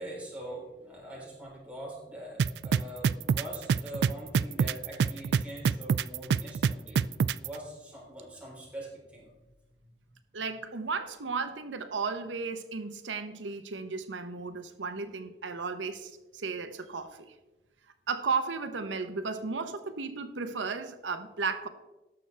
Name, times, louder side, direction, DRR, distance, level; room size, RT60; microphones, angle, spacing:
voice 1, 0.0-7.0 7.3-9.3 9.8-9.9, right 1 dB, 5° right, -5 dB, 3.8 m, -43 dB
sound 1, 2.4-7.5, right 6 dB, 65° right, 0.3 m, -25 dB
voice 2, 10.3-17.3 18.1-21.7, right 4 dB, 85° right, 9 dB, 0.8 m, -34 dB
18.5 x 6.8 x 3.3 m, 1.1 s
head